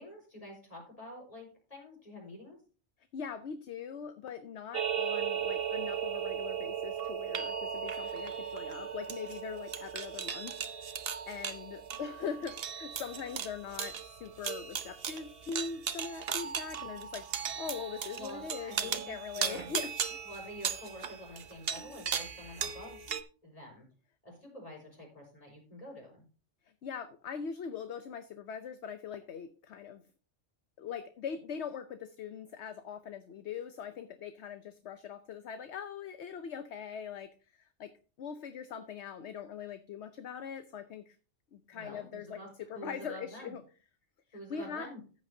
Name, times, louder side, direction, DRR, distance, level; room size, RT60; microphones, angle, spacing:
voice 1, 0.0-2.6 18.2-19.7 20.2-23.0 23.4-23.9 24.2-26.2 41.7-43.5 44.3-45.0, left 1 dB, 30° left, -1 dB, 5.2 m, -47 dB
voice 2, 3.1-10.6 11.3-20.2 26.8-30.0 30.8-37.9 38.2-41.2 41.5-42.4 42.7-43.6 44.3-44.9, left 7 dB, 65° left, 9 dB, 1.0 m, -42 dB
sound 1, 4.7-23.2, right 7 dB, 55° right, 1.0 m, -37 dB
14.0 x 8.4 x 2.7 m, 0.37 s
omnidirectional pair, 1.2 m